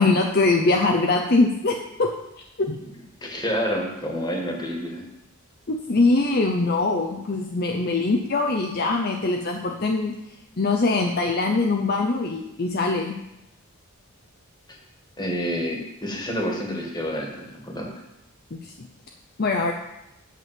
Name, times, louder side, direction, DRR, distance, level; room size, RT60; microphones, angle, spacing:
voice 1, 0.0-2.1 2.6-2.8 5.7-10.1 10.6-13.1 18.5-18.9 19.4-19.7, left 3 dB, 45° left, 2 dB, 0.7 m, -22 dB
voice 2, 3.2-5.0 15.2-17.9, equal, 20° left, 1 dB, 1.7 m, -28 dB
8.1 x 6.2 x 7.6 m, 0.89 s
head